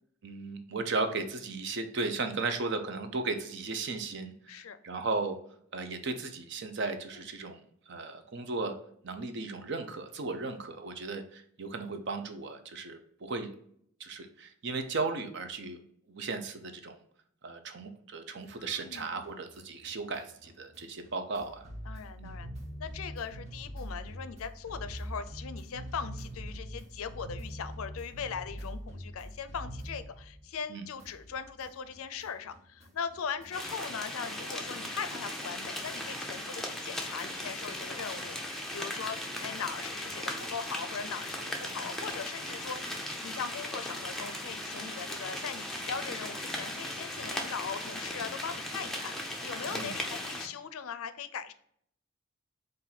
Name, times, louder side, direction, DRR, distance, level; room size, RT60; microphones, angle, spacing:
voice 1, 0.2-5.4 5.7-7.6 7.9-8.8 9.0-13.5 14.0-15.8 16.1-17.0 17.4-21.7 22.2-22.4 30.7-30.9 49.7-49.9, right 3 dB, 55° right, 8 dB, 0.6 m, -36 dB
voice 2, 4.5-4.8 7.2-7.3 18.6-19.1 21.9-22.5 22.8-51.5, left 6 dB, 85° left, 11 dB, 0.4 m, -40 dB
sound 1, 18.4-30.7 31.0-33.8, equal, 35° right, 0.9 m, -44 dB
sound 2, 33.5-50.5, left 1 dB, ahead, 0.5 m, -38 dB
4.3 x 2.6 x 3.9 m, 0.67 s
head